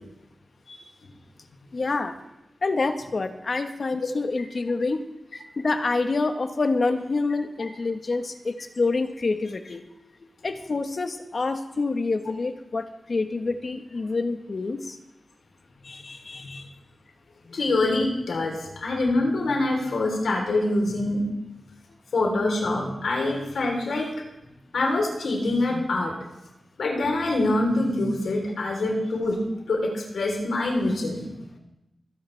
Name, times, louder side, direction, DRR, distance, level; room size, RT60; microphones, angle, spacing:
voice 1, 1.7-2.2 2.6-5.0 5.6-9.8 10.4-15.0 15.8-16.7, left 3 dB, 60° left, 7 dB, 1.3 m, -27 dB
voice 2, 17.5-21.2 22.1-24.1 24.7-26.1 26.8-29.4 29.7-31.5, left 2 dB, 90° left, 0 dB, 3.6 m, -25 dB
23.5 x 10.0 x 3.4 m, 0.90 s
cardioid pair, 50°, 0 cm